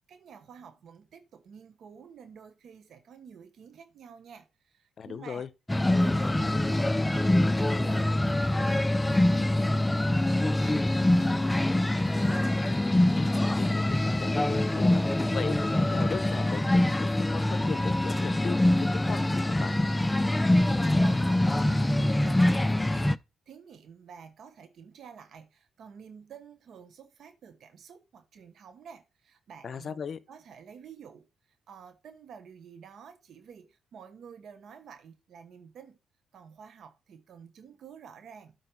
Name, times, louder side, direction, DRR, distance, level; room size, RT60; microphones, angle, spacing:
voice 1, 0.1-5.4 5.8-12.4 20.6-30.0 30.3-36.0 36.3-38.5, right 7 dB, 65° right, 1.0 m, -50 dB
voice 2, 5.0-5.5 13.1-15.0 15.3-19.7 29.6-30.2, left 6 dB, 50° left, 0.8 m, -38 dB
sound 1, 5.7-23.2, left 1 dB, 10° left, 0.4 m, -24 dB
8.0 x 4.6 x 4.7 m
cardioid pair, 90°, 0 cm